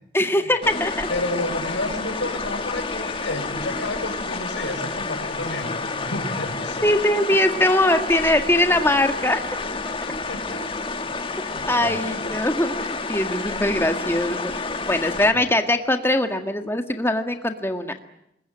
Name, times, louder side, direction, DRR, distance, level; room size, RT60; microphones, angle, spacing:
voice 1, 0.1-1.1 6.8-9.4 11.7-18.0, left 1 dB, 15° left, 6 dB, 1.8 m, -21 dB
sound 1, 0.6-15.3, left 3 dB, 30° left, 1.7 m, -30 dB
voice 2, 1.1-6.9 7.3-7.6 10.1-10.6 11.1-12.4 15.3-15.5, left 2 dB, 90° left, 5 dB, 6.2 m, -31 dB
27.0 x 21.5 x 9.0 m, 0.79 s
head